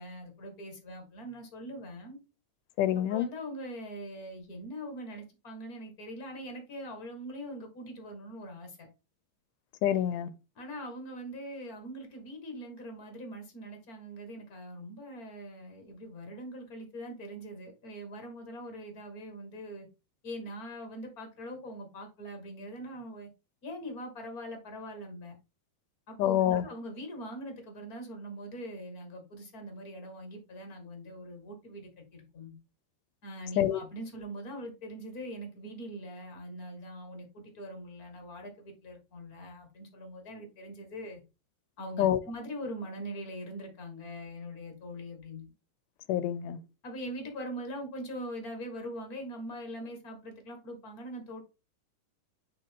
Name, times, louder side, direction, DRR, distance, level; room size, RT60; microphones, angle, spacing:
voice 1, 0.0-2.2 3.1-8.9 10.5-19.9 20.2-23.3 23.6-25.3 26.1-32.5 33.2-41.2 41.8-45.5 46.8-51.4, equal, 35° left, 1.7 m, -42 dB
voice 2, 2.8-3.3 9.8-10.3 26.2-26.7 33.6-33.8 42.0-42.2 46.1-46.6, left 11 dB, 80° left, 2.1 m, -26 dB
6.7 x 4.9 x 3.7 m
omnidirectional pair, 3.8 m